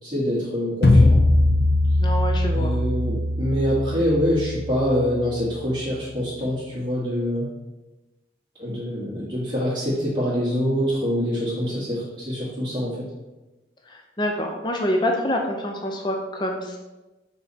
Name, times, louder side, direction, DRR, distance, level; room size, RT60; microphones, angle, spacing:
voice 1, 0.0-1.2 2.5-7.4 8.6-13.0, equal, 25° right, -11 dB, 1.4 m, -25 dB
sound 1, 0.8-5.9, left 1 dB, 60° left, 0.8 m, -21 dB
voice 2, 2.0-2.7 14.2-16.8, left 1 dB, 25° left, 2 dB, 0.5 m, -26 dB
6.0 x 4.2 x 4.3 m, 1.1 s
head